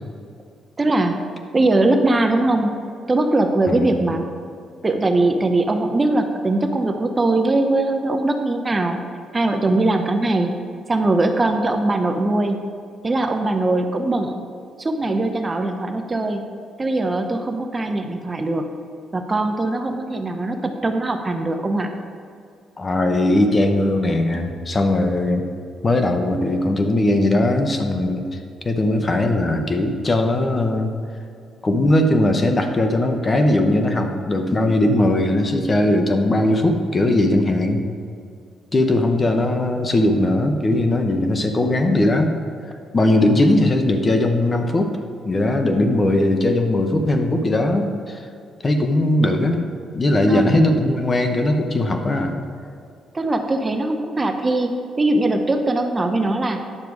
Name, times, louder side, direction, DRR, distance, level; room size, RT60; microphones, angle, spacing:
voice 1, 0.8-1.2 1.5-2.8 3.1-4.3 4.8-9.0 9.3-10.6 10.9-12.6 13.0-14.4 14.8-16.5 16.8-18.7 19.1-21.9 50.3-51.1 53.1-54.7 55.0-56.6, right 2 dB, 25° right, 5 dB, 0.8 m, -21 dB
voice 2, 22.8-25.4 25.8-28.4 28.6-30.9 31.6-37.8 38.7-42.3 42.9-44.9 45.2-48.2 48.6-49.6 49.9-52.4, left 1 dB, 30° left, 5 dB, 1.0 m, -19 dB
9.9 x 6.7 x 4.7 m, 2.3 s
cardioid pair, 90°, 0 cm